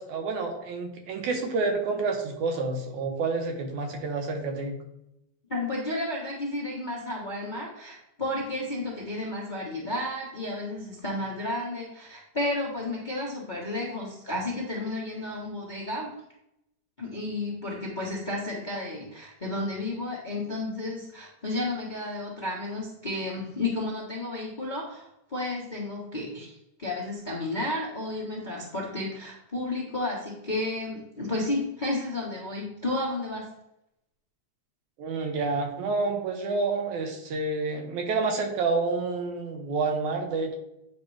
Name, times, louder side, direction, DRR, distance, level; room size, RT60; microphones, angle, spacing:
voice 1, 0.0-4.8 35.0-40.6, right 3 dB, 85° right, 4 dB, 2.5 m, -29 dB
voice 2, 5.5-16.1 17.0-33.5, left 2 dB, 45° left, -4 dB, 0.6 m, -32 dB
9.1 x 3.2 x 4.9 m, 0.83 s
omnidirectional pair, 3.3 m